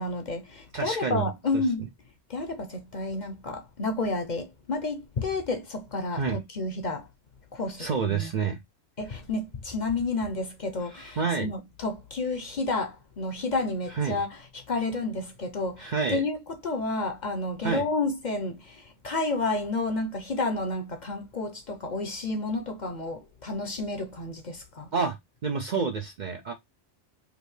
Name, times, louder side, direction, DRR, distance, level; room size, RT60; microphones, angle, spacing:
voice 1, 0.0-1.9 2.3-7.0 7.5-8.3 9.0-24.9, left 3 dB, 45° left, 0.7 m, -31 dB
voice 2, 0.7-1.6 6.1-6.4 7.8-8.6 10.8-11.5 13.9-14.2 15.8-16.2 17.6-17.9 24.9-25.2 25.4-26.5, right 5 dB, 55° right, 0.5 m, -29 dB
4.9 x 2.6 x 3.1 m
omnidirectional pair, 1.2 m